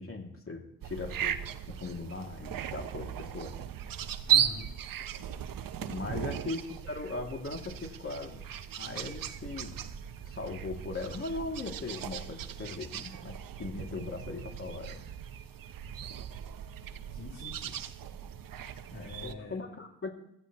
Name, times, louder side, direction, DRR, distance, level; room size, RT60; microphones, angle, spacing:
voice 1, 0.0-1.4 1.7-3.5 5.8-8.4 8.8-9.8 10.2-15.0 18.9-20.1, left 3 dB, 35° left, 1 dB, 2.5 m, -39 dB
sound 1, 0.8-19.3, right 10 dB, 65° right, 0.8 m, -36 dB
voice 2, 4.3-4.7 6.0-6.2 17.1-17.8 18.9-19.6, left 2 dB, 60° left, -4 dB, 3.5 m, -44 dB
15.5 x 15.0 x 3.0 m, 0.81 s
cardioid pair, 60°, 36 cm